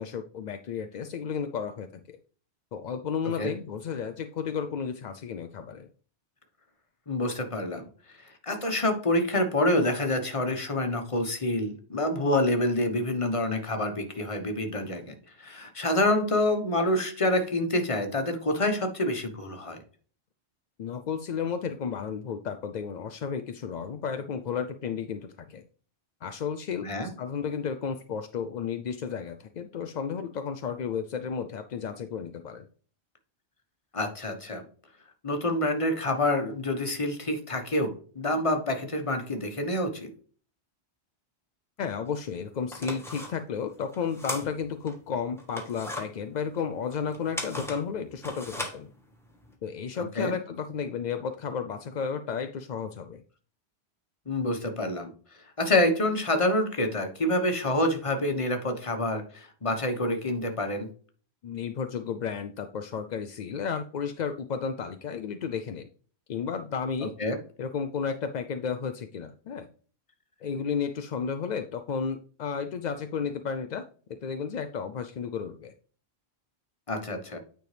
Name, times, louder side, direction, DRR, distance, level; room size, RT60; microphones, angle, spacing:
voice 1, 0.0-2.2 2.7-5.9 20.8-25.6 26.2-32.7 41.8-48.9 49.6-53.2 61.4-65.9 66.3-67.1 67.6-69.7 70.4-73.8 74.2-75.7, left 6 dB, 55° left, 7 dB, 0.5 m, -33 dB
voice 2, 7.1-7.9 8.4-19.8 26.8-27.1 33.9-34.6 35.2-40.1 50.0-50.3 54.3-55.1 55.6-60.9 67.2-67.4 76.9-77.4, left 1 dB, 30° left, 5 dB, 1.2 m, -27 dB
sound 1, 42.1-42.2 42.6-44.9 45.4-49.5, left 1 dB, ahead, 1.3 m, -38 dB
9.3 x 4.5 x 3.3 m, 0.42 s
omnidirectional pair, 1.1 m